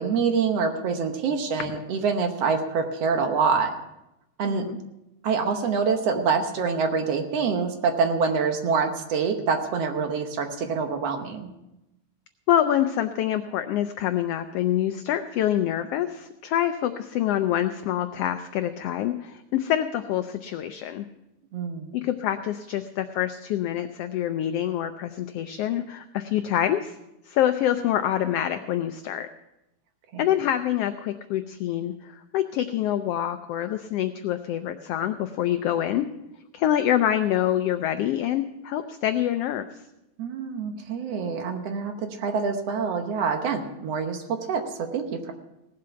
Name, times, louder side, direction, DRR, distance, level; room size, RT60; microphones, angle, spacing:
voice 1, 0.0-3.7 4.4-4.7 5.2-11.5 21.5-21.9 30.1-30.3 40.2-45.3, right 5 dB, 65° right, 5 dB, 1.9 m, -26 dB
voice 2, 4.5-4.8 12.5-21.1 21.9-27.0 27.3-29.3 30.2-36.1 36.5-39.7, left 11 dB, 85° left, 9 dB, 1.3 m, -26 dB
17.5 x 7.7 x 5.7 m, 0.91 s
omnidirectional pair, 3.3 m